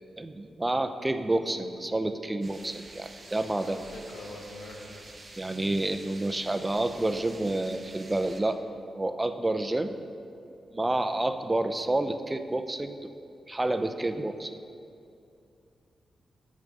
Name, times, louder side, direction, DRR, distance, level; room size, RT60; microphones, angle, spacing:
voice 1, 0.2-3.8 5.4-8.6 8.9-10.0 10.7-13.1 13.5-14.5, right 2 dB, 20° right, 9 dB, 0.5 m, -29 dB
sound 1, 2.4-8.4, right 2 dB, 35° right, 1.0 m, -49 dB
voice 2, 3.6-5.0, left 2 dB, 90° left, 1 dB, 1.1 m, -44 dB
8.8 x 6.4 x 5.2 m, 2.5 s
cardioid pair, 65°, 0 cm